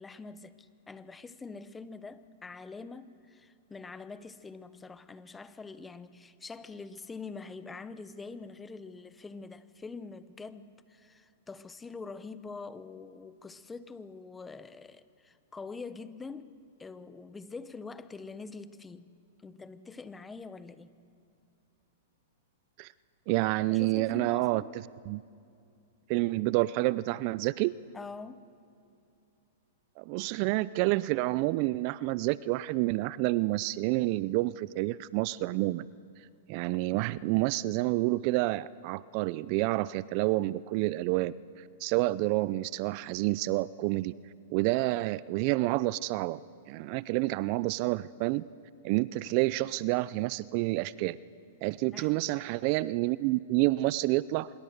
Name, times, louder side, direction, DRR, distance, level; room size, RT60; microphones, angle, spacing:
voice 1, 0.0-19.1 19.4-21.0 23.7-24.7 27.9-28.5 51.9-52.2, left 4 dB, 10° left, 14 dB, 0.9 m, -45 dB
voice 2, 23.3-25.2 26.1-27.7 30.0-35.8 36.5-41.3 41.8-44.1 44.5-46.4 46.7-48.4 48.8-51.2 51.6-54.5, right 19 dB, 45° right, 20 dB, 0.4 m, -29 dB
25.0 x 22.0 x 6.6 m, 2.5 s
hypercardioid pair, 120°, 0 cm